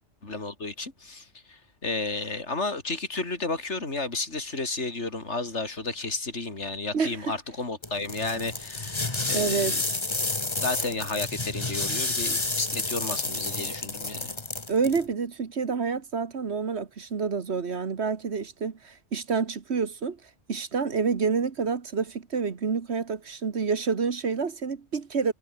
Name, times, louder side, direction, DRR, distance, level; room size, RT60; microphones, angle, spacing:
voice 1, 0.2-9.8 10.6-14.3, left 3 dB, 65° left, 4.2 m, -32 dB
voice 2, 6.9-7.4 9.3-9.8 14.7-20.2 20.5-25.3, right 5 dB, 60° right, 1.7 m, -28 dB
sound 1, 7.8-15.0, left 2 dB, 25° left, 1.5 m, -30 dB
omnidirectional pair, 1.3 m